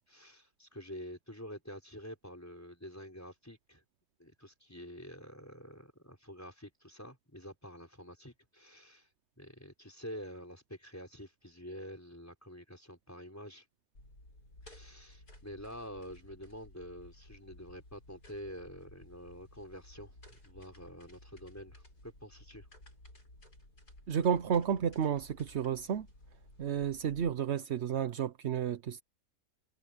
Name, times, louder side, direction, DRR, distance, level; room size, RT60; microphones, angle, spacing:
voice 1, 0.1-3.8 4.2-9.1 9.4-13.6 14.6-22.7, equal, 10° left, 4.7 m, -48 dB
sound 1, 13.9-27.3, left 1 dB, 75° left, 8.7 m, -56 dB
voice 2, 24.1-26.1 26.6-29.0, right 8 dB, 55° right, 0.9 m, -31 dB
omnidirectional pair, 1.7 m